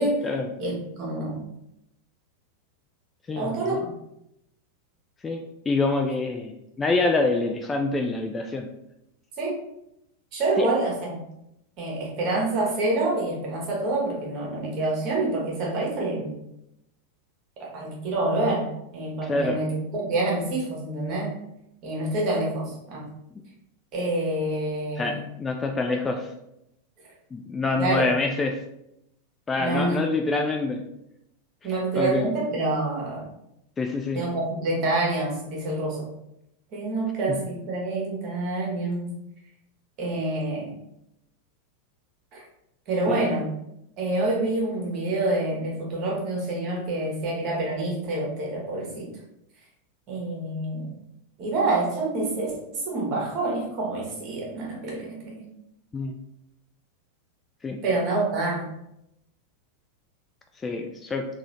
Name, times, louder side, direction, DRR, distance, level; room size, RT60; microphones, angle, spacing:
voice 1, 0.6-1.4 3.3-3.8 9.4-9.6 10.3-11.2 11.8-16.4 17.6-18.7 18.9-21.3 21.8-23.0 23.9-25.2 27.8-28.1 29.6-30.0 31.6-33.3 34.1-36.1 36.7-39.2 40.0-40.7 42.3-42.4 42.9-43.5 44.0-49.1 50.1-50.9 51.4-55.5 57.8-58.7, right 2 dB, 40° right, -2 dB, 1.3 m, -27 dB
voice 2, 3.3-3.8 5.2-8.7 10.6-10.7 19.2-19.6 23.3-23.4 25.0-26.3 27.3-28.6 29.5-30.8 31.9-32.3 33.8-34.2 37.3-37.4 43.1-43.3 55.9-56.2 57.6-57.8 60.6-61.3, left 3 dB, 15° left, 3 dB, 0.3 m, -26 dB
3.7 x 2.6 x 3.1 m, 0.81 s
figure-of-eight pair, 90°, 0 cm